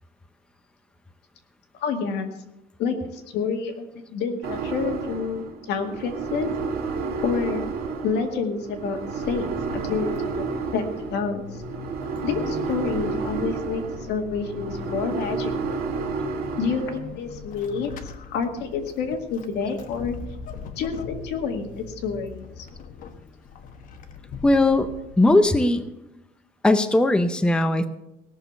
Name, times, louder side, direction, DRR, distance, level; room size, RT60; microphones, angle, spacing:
voice 1, 1.8-2.3 2.8-3.9 4.1-6.5 7.2-7.7 8.0-10.4 10.7-10.8 11.1-11.6 12.2-15.5 16.6-17.9 18.3-20.2 20.8-22.7, left 5 dB, 90° left, 4 dB, 2.0 m, -28 dB
sound 1, 4.4-17.0, right 5 dB, 65° right, 2.0 m, -31 dB
Vehicle / Accelerating revving vroom / Squeak, 8.7-25.9, left 6 dB, 55° left, 1.2 m, -41 dB
voice 2, 24.4-24.9 25.2-25.8 26.6-27.9, left 2 dB, 5° left, 9 dB, 0.6 m, -18 dB
17.5 x 6.6 x 6.8 m, 0.88 s
cardioid pair, 175°, 17 cm